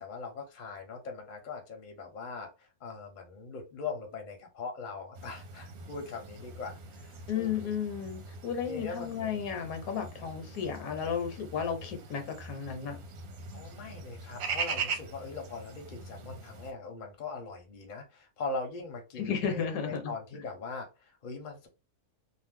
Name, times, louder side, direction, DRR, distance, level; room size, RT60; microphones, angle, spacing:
voice 1, 0.0-7.7 8.7-9.4 13.5-21.7, left 4 dB, 40° left, 0.7 m, -41 dB
sound 1, 5.1-16.7, right 4 dB, 65° right, 1.0 m, -41 dB
voice 2, 7.3-13.0 19.2-20.1, left 7 dB, 75° left, 1.1 m, -33 dB
2.6 x 2.1 x 3.5 m
omnidirectional pair, 1.6 m